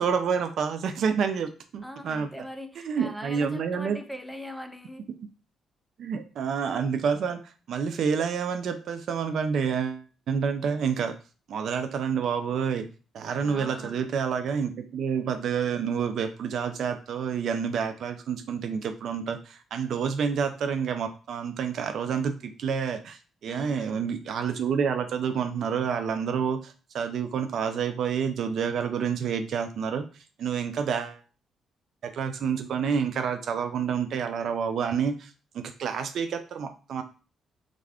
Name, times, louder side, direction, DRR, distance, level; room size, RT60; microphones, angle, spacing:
voice 1, 0.0-2.3 2.9-4.0 6.0-11.1 11.5-12.9 13.1-30.0 30.4-31.2 32.0-37.0, right 6 dB, 65° right, 8 dB, 0.3 m, -28 dB
voice 2, 1.8-5.1 13.4-14.0 23.5-24.1, equal, ahead, 7 dB, 0.4 m, -41 dB
2.4 x 2.3 x 3.3 m, 0.36 s
cardioid pair, 90°, 0 cm